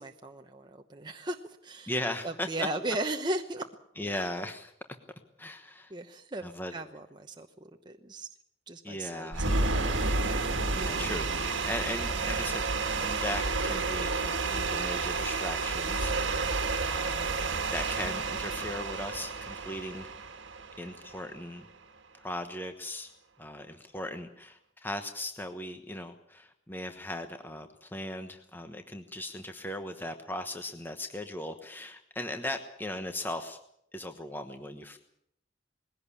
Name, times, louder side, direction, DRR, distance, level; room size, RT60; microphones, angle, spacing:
voice 1, 0.0-1.9 2.2-3.7 5.9-8.3 8.7-9.7, right 1 dB, 25° right, 4 dB, 1.0 m, -36 dB
voice 2, 1.9-2.5 4.0-4.7 5.4-5.9 6.4-6.8 8.8-9.5 10.7-12.6 13.0-16.6 16.9-17.3 17.7-20.1 20.8-21.7 22.1-23.1 23.4-33.6 33.9-35.0, left 1 dB, 10° left, 7 dB, 1.2 m, -38 dB
sound 1, 9.3-21.5, right 3 dB, 75° right, 1.7 m, -31 dB
20.5 x 16.5 x 8.5 m, 0.72 s
head